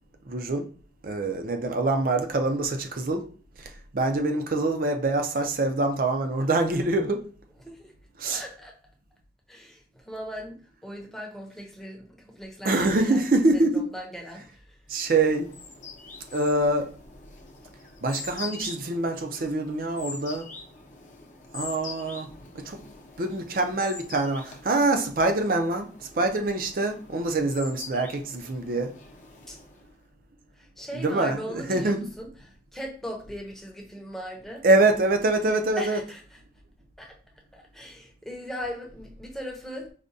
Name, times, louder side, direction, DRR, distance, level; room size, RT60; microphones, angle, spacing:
voice 1, 0.3-0.7 1.0-3.2 3.6-7.2 8.2-8.4 12.6-13.9 14.9-15.5 16.3-16.9 18.0-20.5 21.5-22.3 22.5-22.8 23.2-25.9 26.2-28.9 30.9-32.1 34.6-36.0, right 2 dB, 50° right, 0.5 m, -25 dB
voice 2, 7.6-7.9 8.3-8.7 9.5-13.2 13.5-14.8 29.5-29.6 30.6-34.6 35.8-36.4 37.0-37.1 37.5-39.9, equal, ahead, 0.7 m, -39 dB
sound 1, 15.0-29.9, left 4 dB, 45° left, 0.6 m, -44 dB
4.9 x 2.2 x 2.6 m
head